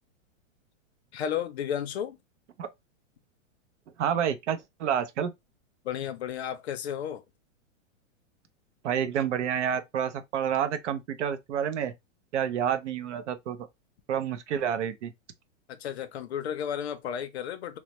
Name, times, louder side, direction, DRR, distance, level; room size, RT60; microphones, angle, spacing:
voice 1, 1.1-2.2 5.8-7.2 15.7-17.8, left 9 dB, 55° left, 0.5 m, -33 dB
voice 2, 4.0-5.3 8.8-11.9 12.3-13.7 14.1-15.1, right 8 dB, 65° right, 0.6 m, -29 dB
3.1 x 2.1 x 2.9 m
supercardioid pair, 175°, 39 cm